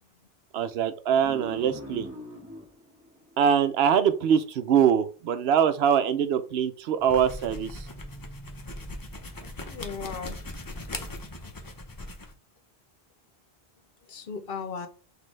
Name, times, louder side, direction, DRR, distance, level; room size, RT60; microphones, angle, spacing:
voice 1, 0.5-2.1 3.4-7.8, right 8 dB, 80° right, 0.8 m, -23 dB
sound 1, 1.2-4.4, equal, 15° right, 1.0 m, -43 dB
sound 2, 7.0-12.3, left 1 dB, 25° left, 0.6 m, -39 dB
voice 2, 9.7-10.4 10.9-11.0 14.0-14.9, left 5 dB, 65° left, 0.9 m, -36 dB
6.1 x 2.6 x 3.2 m
omnidirectional pair, 1.0 m